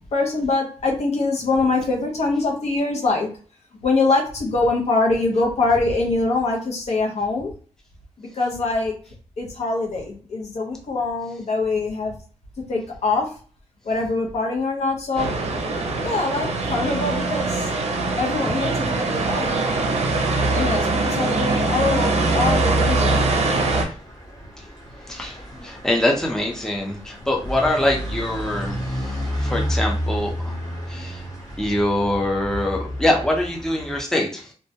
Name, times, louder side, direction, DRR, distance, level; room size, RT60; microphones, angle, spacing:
voice 1, 0.1-3.3 3.8-7.5 8.2-8.9 9.4-12.1 12.7-13.3 13.9-15.3 16.0-17.7 18.2-19.5 20.5-23.2, left 3 dB, 70° left, 0 dB, 0.6 m, -23 dB
sound 1, 15.2-23.8, right 3 dB, 65° right, 0.5 m, -22 dB
sound 2, 22.4-34.0, equal, 30° left, 0.9 m, -31 dB
voice 2, 25.6-28.8 29.4-30.6 30.9-31.2 31.6-34.5, left 1 dB, 5° left, 0 dB, 0.6 m, -23 dB
2.2 x 2.1 x 2.7 m, 0.40 s
cardioid pair, 85°, 12 cm